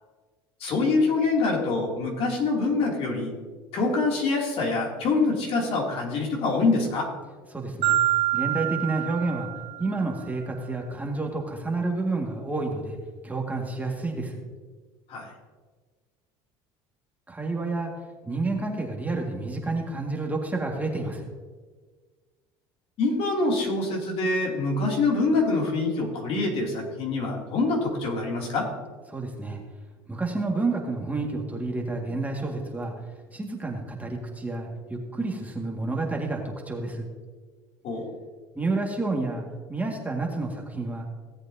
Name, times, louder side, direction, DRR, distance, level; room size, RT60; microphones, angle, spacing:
voice 1, 0.6-3.3 3.7-7.1 15.1-15.3 23.0-28.7 37.8-38.1, left 3 dB, 60° left, -1 dB, 2.9 m, -25 dB
voice 2, 7.5-8.0 8.3-9.5 9.8-13.0 13.2-14.4 17.3-17.9 18.3-21.3 29.1-29.6 30.1-32.9 33.3-37.1 38.6-39.4 39.7-41.1, right 3 dB, 15° right, 0 dB, 2.0 m, -29 dB
Marimba xylophone, 7.8-10.0, right 15 dB, 65° right, 1.5 m, -26 dB
17.0 x 8.1 x 2.8 m, 1.4 s
supercardioid pair, 90°, 12 cm